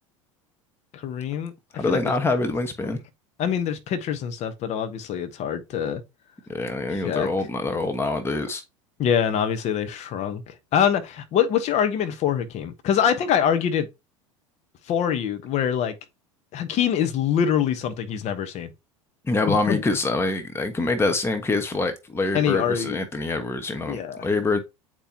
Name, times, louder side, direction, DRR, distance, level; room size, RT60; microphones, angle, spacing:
voice 1, 0.9-2.1 2.8-3.0 3.4-6.0 6.9-7.3 9.0-13.9 14.9-16.0 16.5-18.7 19.5-19.8 22.3-23.0 23.9-24.3, left 8 dB, 40° left, 1.1 m, -24 dB
voice 2, 1.7-3.0 6.5-8.6 19.2-24.6, left 3 dB, 15° left, 1.0 m, -25 dB
8.5 x 4.5 x 2.8 m
figure-of-eight pair, 80°, 17 cm